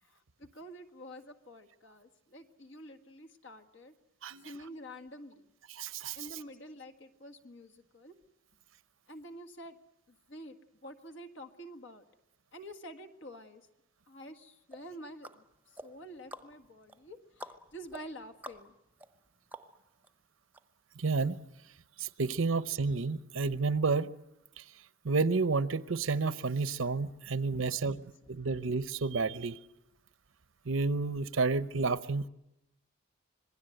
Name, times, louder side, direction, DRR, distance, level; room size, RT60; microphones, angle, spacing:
voice 1, 0.0-3.9 4.4-5.5 6.1-8.2 9.1-9.8 10.1-10.6 10.8-12.1 12.5-13.7 14.1-15.4 15.8-18.7, equal, 65° left, 1.8 m, -48 dB
voice 2, 4.2-4.5 5.7-6.2 21.0-21.4 22.0-24.1 24.6-24.7 25.0-28.0 28.4-29.6 30.7-32.3, right 4 dB, 80° right, 0.8 m, -30 dB
sound 1, 14.7-20.1 20.5-20.6, equal, 10° right, 0.9 m, -50 dB
26.5 x 20.5 x 7.9 m
head